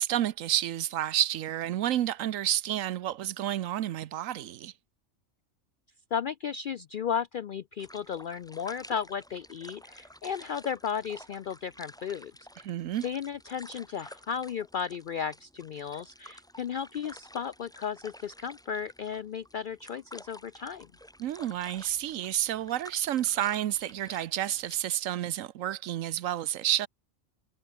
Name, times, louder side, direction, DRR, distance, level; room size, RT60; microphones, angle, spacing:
voice 1, 0.0-4.7 12.6-13.0 21.2-26.9, right 12 dB, 75° right, 1.1 m, -30 dB
voice 2, 6.1-12.7 13.0-20.9, left 7 dB, 70° left, 0.5 m, -34 dB
sound 1, 7.8-24.8, equal, 5° left, 1.3 m, -51 dB
omnidirectional pair, 1.4 m